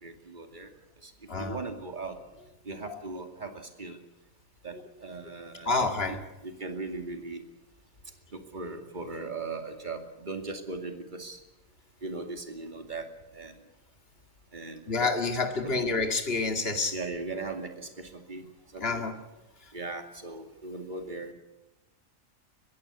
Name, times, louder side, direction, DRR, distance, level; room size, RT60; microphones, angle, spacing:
voice 1, 0.0-0.7 1.0-1.1 1.4-2.2 2.6-4.0 4.6-6.2 6.4-7.4 8.3-11.4 12.0-13.5 14.5-15.1 15.6-15.9 16.9-18.5 18.7-19.1 19.7-21.3, right 3 dB, 35° right, 6 dB, 2.5 m, -38 dB
voice 2, 1.3-1.6 2.9-3.0 5.7-6.2 14.9-16.9 18.8-19.1, left 3 dB, 45° left, 5 dB, 2.5 m, -28 dB
21.5 x 16.0 x 9.6 m, 1.0 s
omnidirectional pair, 1.4 m